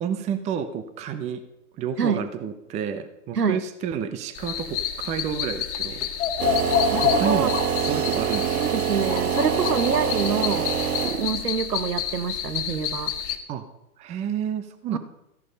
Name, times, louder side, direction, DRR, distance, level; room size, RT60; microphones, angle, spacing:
voice 1, 0.0-1.4 1.8-6.1 7.0-7.6 7.9-8.7 13.5-13.6 14.0-15.0, right 8 dB, 15° right, 11 dB, 0.7 m, -30 dB
sound 1, 4.3-13.4, left 9 dB, 50° left, 1.7 m, -28 dB
sound 2, 6.4-11.6, right 9 dB, 70° right, 1.1 m, -26 dB
voice 2, 6.9-7.5 8.4-10.7 11.2-13.1 14.9-15.0, right 6 dB, 90° right, 12 dB, 1.3 m, -26 dB
14.0 x 10.5 x 5.2 m, 0.84 s
hypercardioid pair, 125°, 46 cm